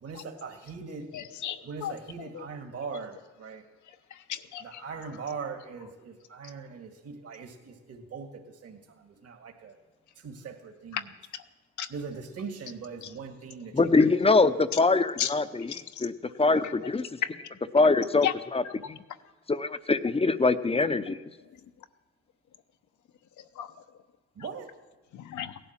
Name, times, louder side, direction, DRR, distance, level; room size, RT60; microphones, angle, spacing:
voice 1, 0.0-1.1 1.6-3.6 4.6-9.8 10.2-11.1 11.9-14.0 24.4-24.7, right 5 dB, 55° right, 3 dB, 2.0 m, -40 dB
voice 2, 1.1-2.0 4.3-4.8 11.8-11.9 15.2-15.3 17.8-17.9 18.2-18.3 23.6-23.7 25.2-25.5, left 11 dB, 75° left, 9 dB, 1.0 m, -32 dB
voice 3, 13.7-17.1 17.7-19.0 19.5-21.2, left 3 dB, 20° left, 12 dB, 0.7 m, -24 dB
17.0 x 11.5 x 7.4 m, 1.3 s
cardioid pair, 90°, 30 cm